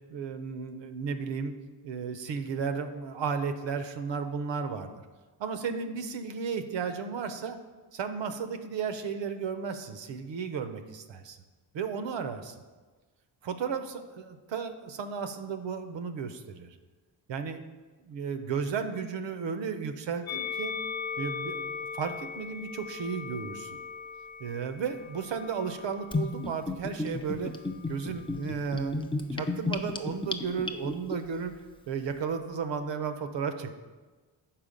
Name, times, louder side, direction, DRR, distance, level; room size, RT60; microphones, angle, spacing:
voice 1, 0.1-1.5 1.8-4.9 5.4-7.6 7.9-11.4 11.7-12.5 13.4-16.8 17.3-17.6 18.0-20.7 21.2-23.8 24.4-27.6 27.9-31.6 31.9-33.7, right 6 dB, 65° right, 9 dB, 0.7 m, -34 dB
Musical instrument, 20.3-26.7 27.5-28.5, left 6 dB, 75° left, 0.7 m, -39 dB
Gurgling / Bathtub (filling or washing), 26.1-31.2, left 3 dB, 10° left, 0.4 m, -33 dB
5.8 x 4.4 x 5.1 m, 1.3 s
cardioid pair, 60°, 47 cm